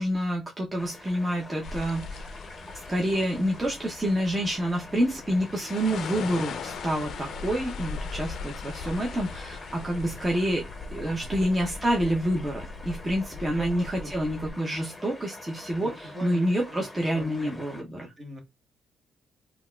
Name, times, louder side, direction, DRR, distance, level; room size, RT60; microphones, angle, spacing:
voice 1, 0.0-2.2 2.7-10.7 10.9-15.9 16.2-18.1, equal, 20° right, 0.6 m, -28 dB
sound 1, 0.8-17.8, left 2 dB, 20° left, 0.7 m, -46 dB
sound 2, 1.6-14.5, left 4 dB, 70° left, 0.4 m, -39 dB
voice 2, 9.7-10.2 10.9-11.4 13.3-14.1 15.8-17.6 18.0-18.4, equal, 40° right, 1.1 m, -43 dB
3.9 x 2.3 x 2.2 m
cardioid pair, 90°, 0 cm